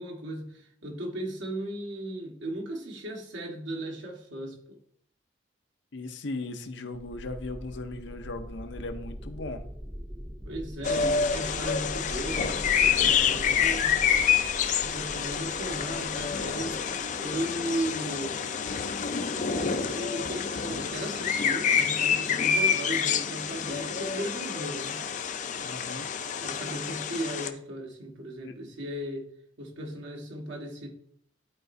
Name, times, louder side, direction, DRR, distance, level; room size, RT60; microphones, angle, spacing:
voice 1, 0.0-4.8 10.4-14.0 14.8-16.8 17.2-18.4 19.4-25.0 26.4-29.3 29.6-30.9, right 1 dB, 80° right, 0 dB, 1.5 m, -36 dB
voice 2, 5.9-9.6 12.9-13.2 25.6-26.1 28.4-28.6, left 2 dB, 75° left, 7 dB, 0.7 m, -37 dB
sound 1, 6.9-17.5, equal, 10° right, 0.5 m, -42 dB
sound 2, 10.8-27.5, left 7 dB, 40° left, 0.4 m, -28 dB
11.5 x 4.3 x 2.6 m, 0.66 s
head